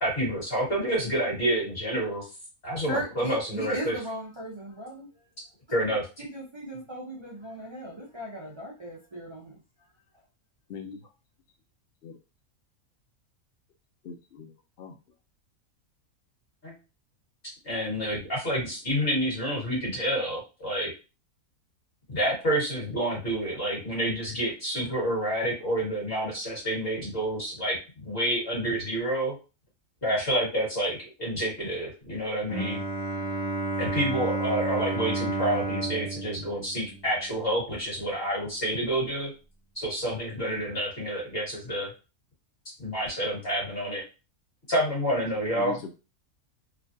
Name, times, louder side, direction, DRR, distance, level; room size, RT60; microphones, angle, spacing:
voice 1, 0.0-2.3 2.6-3.9 5.7-6.0 16.6-16.8 17.6-20.9 22.1-29.3 30.0-32.8 33.8-39.3 39.8-41.9 42.8-44.0 44.7-45.7, right 1 dB, 40° left, -5 dB, 1.7 m, -28 dB
voice 2, 2.8-5.1 5.8-9.6, right 1 dB, 50° right, -5 dB, 0.3 m, -37 dB
voice 3, 14.0-15.0 45.5-45.9, left 5 dB, 85° left, 3 dB, 0.5 m, -40 dB
Bowed string instrument, 32.5-37.4, right 2 dB, 70° left, 1.1 m, -31 dB
3.1 x 2.2 x 2.6 m, 0.31 s
omnidirectional pair, 1.6 m